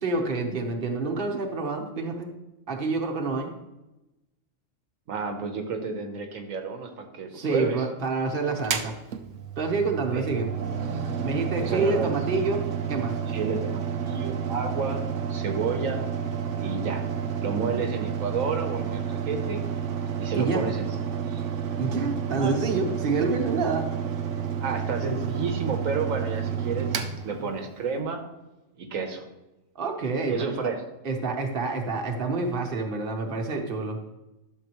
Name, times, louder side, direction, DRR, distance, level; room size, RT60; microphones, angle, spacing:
voice 1, 0.0-2.3 2.7-3.5 7.3-8.9 9.6-10.5 11.2-13.2 20.3-20.7 21.8-23.9 29.7-30.7 31.0-34.0, right 3 dB, 45° right, 2 dB, 1.3 m, -28 dB
voice 2, 5.1-7.8 10.1-10.3 11.6-12.1 13.3-16.0 16.6-17.1 17.4-19.6 20.2-21.4 22.4-22.5 24.6-28.2 28.8-29.3 30.3-30.8, right 5 dB, 90° right, 5 dB, 1.5 m, -31 dB
Mechanical fan, 8.6-28.0, right 7 dB, 70° right, 1.1 m, -30 dB
12.0 x 6.6 x 3.1 m, 0.99 s
omnidirectional pair, 1.4 m